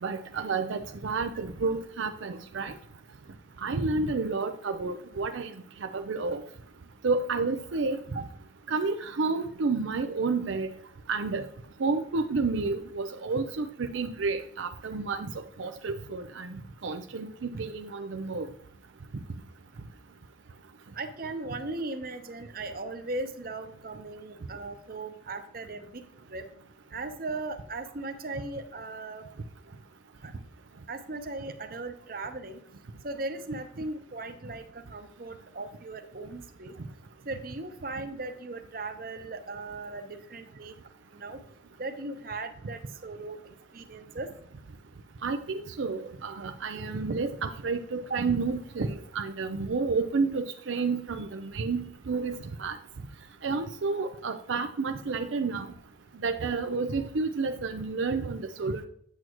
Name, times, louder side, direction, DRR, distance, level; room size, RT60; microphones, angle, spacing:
voice 1, 0.0-2.7 3.6-5.5 5.8-6.4 7.0-8.2 8.7-10.7 11.1-11.4 11.8-15.3 15.6-18.5 45.2-52.8 53.4-55.7 56.2-58.8, right 4 dB, 80° right, 6 dB, 0.6 m, -30 dB
voice 2, 20.9-26.5 26.9-29.2 30.2-30.3 30.9-32.6 33.0-36.7 37.2-40.7 41.1-41.4 41.8-43.4 43.7-44.3 48.1-48.2, right 2 dB, 50° right, 7 dB, 0.9 m, -38 dB
8.5 x 7.5 x 3.0 m, 0.67 s
head